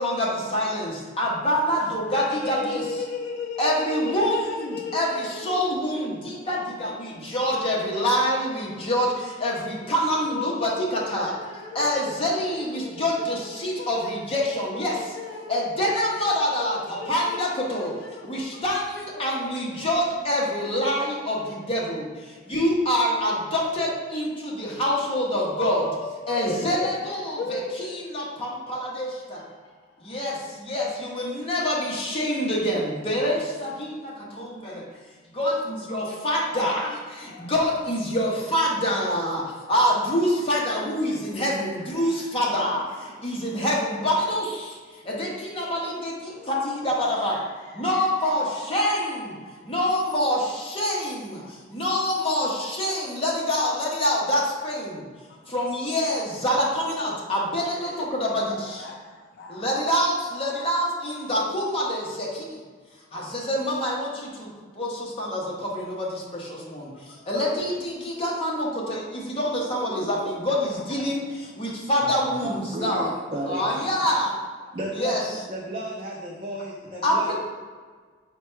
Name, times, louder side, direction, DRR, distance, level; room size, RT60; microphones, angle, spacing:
voice 1, 0.0-2.8 3.6-15.2 15.5-17.9 18.2-25.8 26.3-29.4 30.0-34.8 35.3-44.8 45.0-47.4 47.7-49.3 49.6-55.0 55.5-58.9 59.5-62.5 63.1-64.5 64.7-73.1 73.5-74.3 75.0-75.2 77.0-77.3, equal, 30° left, -4 dB, 0.8 m, -26 dB
voice 2, 1.7-7.2 9.8-9.9 10.3-18.3 18.5-18.7 18.9-20.0 22.3-22.4 25.5-26.9 27.4-28.5 29.6-30.2 35.4-35.5 35.9-36.8 37.3-37.5 43.0-43.2 46.3-46.6 47.2-48.0 48.5-48.7 55.3-55.4 57.7-59.6 60.3-60.9 67.1-67.2 69.8-70.4 70.8-71.0 71.4-71.8 74.6-74.7 76.9-77.0, left 3 dB, 55° left, -1 dB, 0.5 m, -38 dB
voice 3, 72.0-73.1 73.3-74.1 74.7-77.3, right 1 dB, 30° right, -4 dB, 0.4 m, -33 dB
4.4 x 2.2 x 4.4 m, 1.5 s
head